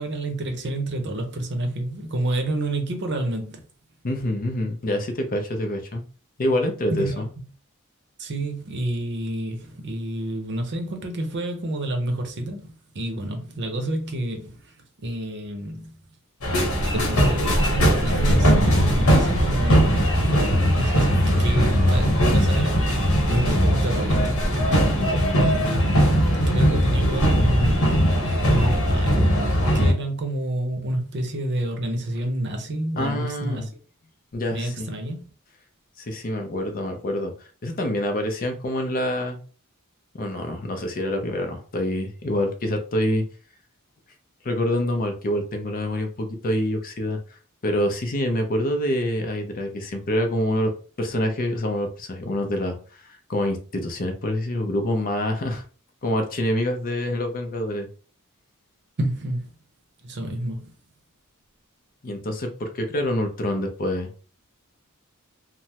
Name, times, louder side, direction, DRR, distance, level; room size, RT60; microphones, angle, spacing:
voice 1, 0.0-3.6 6.9-7.3 8.2-16.0 16.9-19.8 20.7-24.7 25.4-33.6 34.5-35.2 59.0-59.5 60.0-60.7, right 1 dB, 55° right, 0.7 m, -29 dB
voice 2, 4.0-6.0 6.4-7.2 23.3-23.6 25.0-25.4 33.0-33.7 34.3-34.9 36.0-37.3 37.6-39.4 40.1-43.3 44.4-47.2 47.6-50.7 51.0-55.6 56.0-57.9 62.0-64.1, left 1 dB, 40° left, 0.5 m, -26 dB
sound 1, 16.4-29.9, equal, 70° left, 1.0 m, -20 dB
3.3 x 2.0 x 2.8 m
head